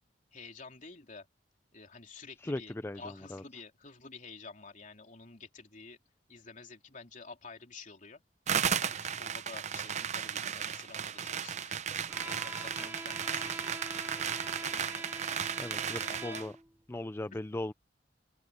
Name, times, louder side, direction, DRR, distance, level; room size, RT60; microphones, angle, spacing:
voice 1, 0.3-1.3 1.7-6.0 6.3-8.2 8.7-11.8 12.2-15.5 15.9-16.5 17.3-17.4, left 4 dB, 45° left, 3.5 m, -50 dB
voice 2, 2.4-3.4 15.6-16.5 16.9-17.7, left 1 dB, 15° left, 0.4 m, -38 dB
sound 1, 8.5-16.5, right 8 dB, 40° right, 0.6 m, -35 dB
Bowed string instrument, 12.1-16.8, right 2 dB, 10° right, 0.8 m, -44 dB
open air
head